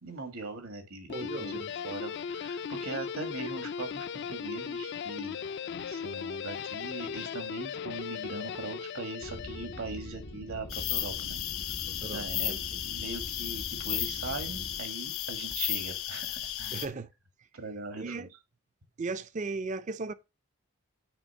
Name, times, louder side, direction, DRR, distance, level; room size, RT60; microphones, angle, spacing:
voice 1, 0.0-5.4 5.9-11.4 11.6-11.8 12.1-12.6 12.8-16.9 17.5-18.3, right 3 dB, 75° right, 1.5 m, -41 dB
Guitar, 1.1-10.4, left 6 dB, 50° left, 0.3 m, -37 dB
voice 2, 1.1-1.7 11.9-12.6 16.7-17.1 18.0-18.3 19.0-20.1, right 3 dB, 35° right, 0.4 m, -37 dB
sound 1, 9.2-14.8, left 1 dB, 90° left, 1.8 m, -44 dB
sound 2, 10.7-16.9, left 12 dB, 75° left, 1.1 m, -34 dB
9.0 x 3.4 x 5.4 m
head